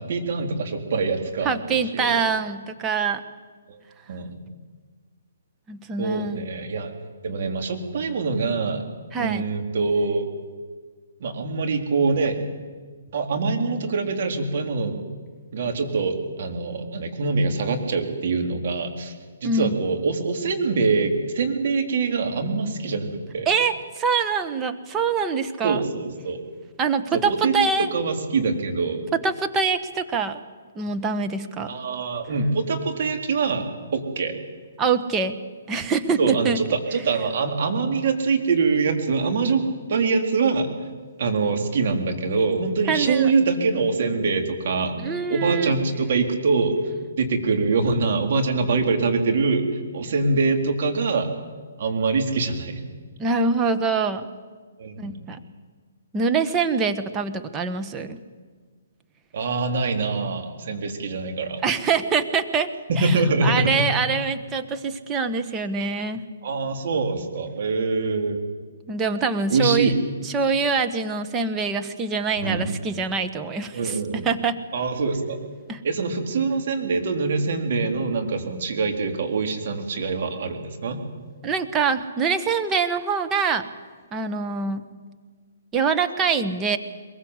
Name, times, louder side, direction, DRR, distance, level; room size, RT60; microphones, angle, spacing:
voice 1, 0.0-2.2 3.7-3.8 4.1-4.4 6.0-6.9 7.2-8.8 9.2-10.3 11.2-12.5 13.1-15.0 15.5-19.2 19.4-23.5 25.6-26.4 27.1-29.0 31.7-33.6 33.9-34.3 36.2-39.6 39.9-40.7 41.2-46.8 47.1-49.6 49.9-51.3 51.8-52.8 54.8-55.2 59.3-61.6 62.9-63.9 66.4-68.4 69.5-70.0 72.4-72.7 73.7-74.3 74.7-75.4 75.8-81.0, right 4 dB, 55° right, 4 dB, 3.9 m, -24 dB
voice 2, 1.4-3.2 5.7-6.4 9.1-9.5 19.4-19.7 23.5-25.8 26.8-27.9 29.2-30.4 30.7-31.7 34.8-35.4 35.7-36.6 42.9-43.3 45.0-45.7 53.2-54.3 55.0-55.4 56.1-58.2 61.6-62.7 63.0-66.2 68.9-69.9 70.2-74.6 75.7-75.8 81.4-83.7 84.1-84.9 85.7-86.8, right 5 dB, 20° right, 7 dB, 1.5 m, -24 dB
22.5 x 21.5 x 8.2 m, 1.5 s
hypercardioid pair, 140°, 0 cm